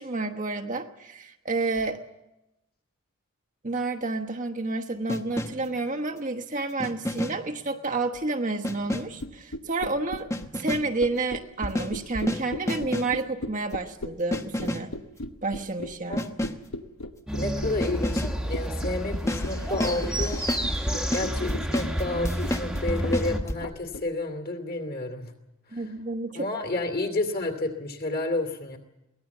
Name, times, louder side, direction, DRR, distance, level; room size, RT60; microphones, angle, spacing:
voice 1, 0.0-2.0 3.6-14.9 15.4-16.3 25.7-26.5, right 3 dB, 35° right, 4 dB, 1.1 m, -30 dB
sound 1, 5.1-5.8 6.8-7.6 8.6-9.2 10.3-11.0 11.6-13.2 14.3-15.0 16.2-16.7 17.8-18.4 19.1-23.6, left 1 dB, 15° left, 0.9 m, -31 dB
sound 2, 8.9-24.0, left 1 dB, 65° left, 1.1 m, -36 dB
sound 3, 17.3-23.4, equal, 5° right, 1.3 m, -30 dB
voice 2, 17.4-20.4 21.1-25.3 25.7-25.9 26.3-28.8, left 2 dB, 40° left, 6 dB, 2.6 m, -30 dB
23.0 x 18.0 x 7.2 m, 0.93 s
head